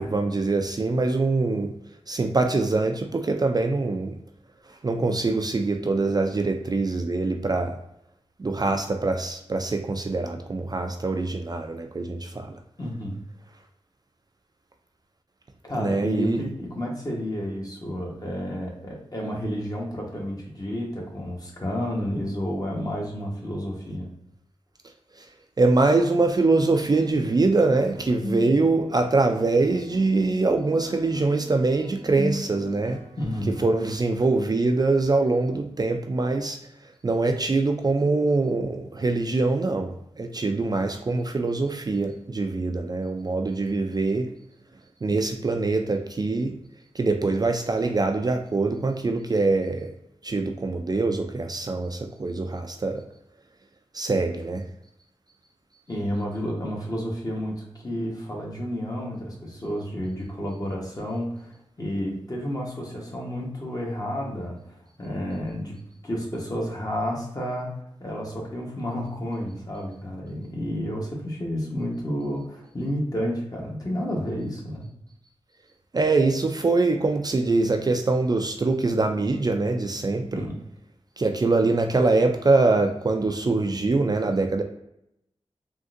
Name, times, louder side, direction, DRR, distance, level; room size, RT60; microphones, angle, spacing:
voice 1, 0.0-1.7 2.1-4.2 4.8-7.8 8.4-12.6 15.8-16.5 25.2-25.3 25.6-33.0 33.6-36.6 37.0-44.3 45.0-46.6 46.9-49.9 50.2-53.0 53.9-54.7 75.9-80.5 81.2-84.6, right 3 dB, 35° right, 4 dB, 0.4 m, -23 dB
voice 2, 12.8-13.2 15.6-24.1 33.2-33.6 55.9-65.8 66.0-67.7 68.0-74.9 80.3-80.6, equal, 35° left, -2 dB, 1.1 m, -31 dB
sound 1, 26.6-33.8, left 1 dB, 80° left, 0.6 m, -39 dB
3.7 x 2.5 x 2.5 m, 0.80 s
cardioid pair, 55°, 11 cm